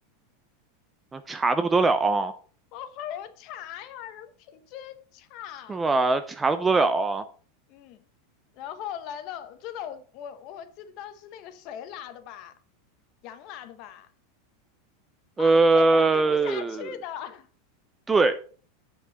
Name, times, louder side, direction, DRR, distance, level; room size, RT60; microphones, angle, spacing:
voice 1, 1.1-2.3 5.7-7.3 15.4-16.8 18.1-18.4, right 3 dB, 10° right, 0.4 m, -21 dB
voice 2, 2.7-5.8 7.7-8.0 8.5-12.5 13.2-14.1 15.4-17.5, left 10 dB, 35° left, 1.0 m, -39 dB
8.4 x 5.5 x 5.5 m
supercardioid pair, 170°, 0 cm